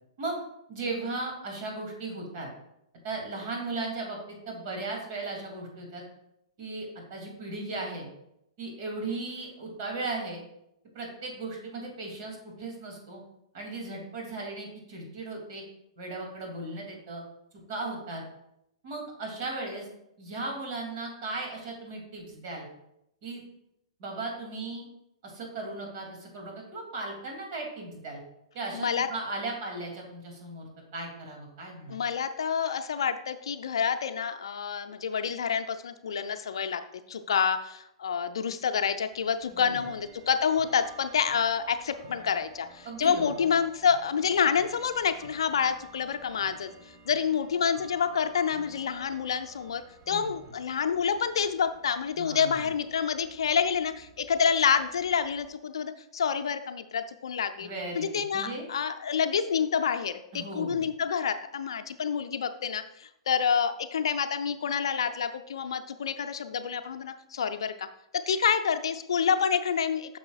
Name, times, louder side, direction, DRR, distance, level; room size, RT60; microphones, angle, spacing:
voice 1, 0.7-2.5 3.0-6.0 6.6-8.1 8.6-10.4 10.9-13.2 13.5-15.6 16.0-17.2 17.7-18.2 18.8-19.9 20.2-22.7 23.2-23.4 24.0-24.9 25.2-28.2 28.5-32.0 39.5-39.8 42.8-43.2 50.0-50.2 52.2-52.6 57.6-58.7 60.3-60.9, right 2 dB, 45° right, 0 dB, 2.6 m, -36 dB
voice 2, 28.7-29.1 31.9-36.8 37.1-46.7 47.0-57.7 58.0-67.9 68.3-70.2, left 7 dB, 65° left, 9 dB, 0.5 m, -28 dB
Bell / Tick-tock, 39.1-55.5, right 4 dB, 30° right, 1.2 m, -53 dB
9.2 x 6.2 x 2.4 m, 0.79 s
figure-of-eight pair, 110°, 3 cm